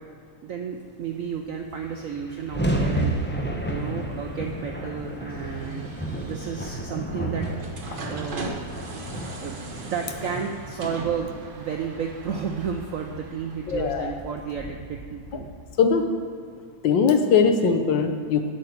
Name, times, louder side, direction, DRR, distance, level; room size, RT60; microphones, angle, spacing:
voice 1, 0.4-7.5 8.1-8.6 9.4-11.3 11.6-15.5, right 6 dB, 70° right, 3 dB, 0.7 m, -32 dB
sound 1, 1.4-1.5 1.6-16.0, right 1 dB, 15° left, 0.4 m, -33 dB
sound 2, 3.4-14.1, right 2 dB, 35° right, 0.9 m, -40 dB
voice 2, 13.7-14.1 15.8-16.0 16.8-18.5, left 5 dB, 75° left, 6 dB, 1.5 m, -20 dB
8.5 x 6.5 x 8.1 m, 2.3 s
omnidirectional pair, 2.1 m